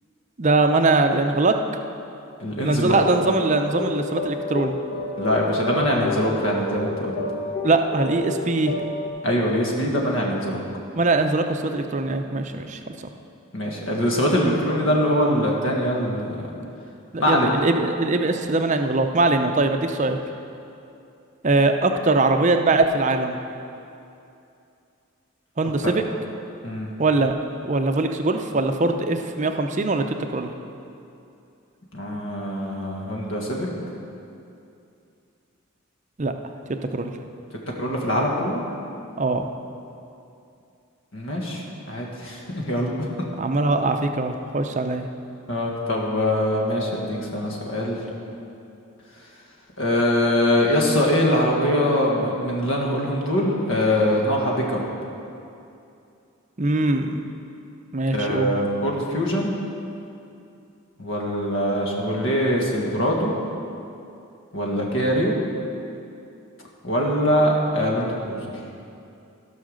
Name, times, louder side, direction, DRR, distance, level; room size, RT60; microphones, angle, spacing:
voice 1, 0.4-1.5 2.6-4.7 7.6-8.7 10.9-13.0 17.1-20.2 21.4-23.4 25.6-26.0 27.0-27.3 27.6-30.5 36.2-36.3 36.7-37.1 39.2-39.5 43.4-45.1 56.6-57.2 57.9-58.5, right 2 dB, 35° right, 6 dB, 0.6 m, -22 dB
voice 2, 2.4-3.0 5.2-7.1 9.2-10.6 13.5-16.5 17.2-17.5 25.8-25.9 26.6-26.9 31.9-33.7 37.8-38.6 41.1-42.9 45.5-48.0 49.8-54.8 58.1-59.5 61.0-63.3 64.5-65.4 66.8-68.5, equal, 65° left, -2 dB, 1.7 m, -23 dB
sound 1, 2.9-9.1, left 2 dB, 45° left, 1.2 m, -30 dB
15.5 x 5.8 x 6.4 m, 2.6 s
head